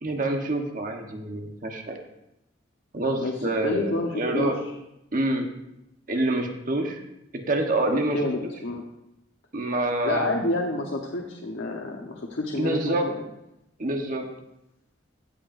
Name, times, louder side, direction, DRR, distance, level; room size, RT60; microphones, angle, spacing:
voice 1, 0.0-2.0 2.9-4.6 5.1-5.5 6.1-7.0 7.5-8.5 9.5-10.3 12.5-13.1 13.8-14.3, right 1 dB, 45° right, 3 dB, 1.1 m, -27 dB
voice 2, 3.6-4.5 8.1-8.8 10.0-13.2, left 2 dB, 85° left, 0 dB, 1.1 m, -29 dB
15.5 x 8.2 x 2.6 m, 0.86 s
head